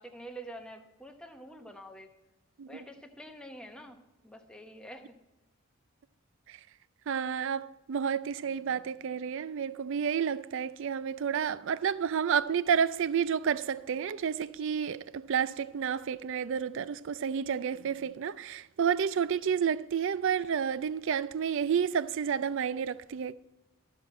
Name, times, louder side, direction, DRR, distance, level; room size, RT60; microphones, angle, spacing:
voice 1, 0.0-2.1 2.7-4.0 4.2-5.1, right 1 dB, 5° left, 0.8 m, -46 dB
voice 2, 7.1-23.3, right 7 dB, 60° right, 0.4 m, -30 dB
13.5 x 6.3 x 4.2 m
head